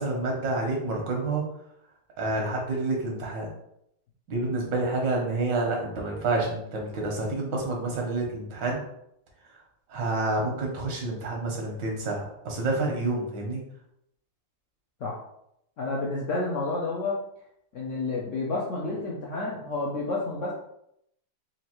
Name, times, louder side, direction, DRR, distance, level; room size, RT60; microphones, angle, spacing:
voice 1, 0.0-1.4 2.2-3.5 4.3-8.8 9.9-13.6, right 2 dB, 85° right, -1 dB, 1.7 m, -28 dB
voice 2, 15.8-17.2 17.7-20.5, left 3 dB, 70° left, -3 dB, 0.7 m, -30 dB
4.4 x 2.5 x 2.9 m, 0.77 s
omnidirectional pair, 1.9 m